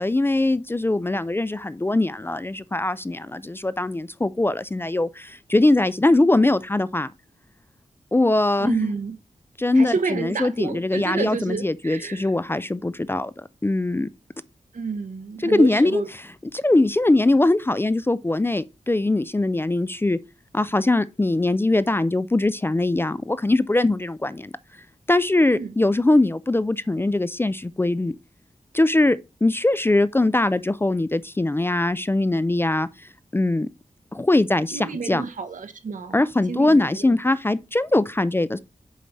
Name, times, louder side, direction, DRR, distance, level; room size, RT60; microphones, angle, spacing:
voice 1, 0.0-7.1 8.1-8.9 9.6-14.1 15.4-16.0 16.5-20.2 20.5-24.5 25.1-28.1 28.7-33.7 34.1-34.8 35.1-35.2 36.1-38.6, left 2 dB, 15° left, 0.3 m, -21 dB
voice 2, 8.6-9.2 9.7-12.3 14.7-16.1 25.5-25.7 34.7-37.2, right 5 dB, 80° right, 1.0 m, -30 dB
7.6 x 3.2 x 5.2 m
wide cardioid pair, 85°, 13 cm